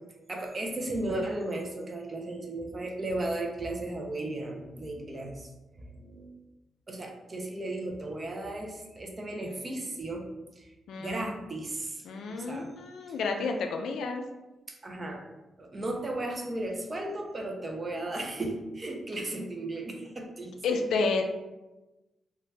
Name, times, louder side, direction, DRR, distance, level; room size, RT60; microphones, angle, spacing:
voice 1, 0.3-6.3 6.9-10.3 10.6-10.7 11.0-12.7 14.7-15.2 15.6-20.5, right 2 dB, 25° right, 1 dB, 0.4 m, -35 dB
voice 2, 10.9-11.3 12.0-14.2 20.6-21.2, left 4 dB, 85° left, 4 dB, 0.3 m, -30 dB
2.7 x 2.1 x 3.1 m, 1.1 s
wide cardioid pair, 165°, 0 cm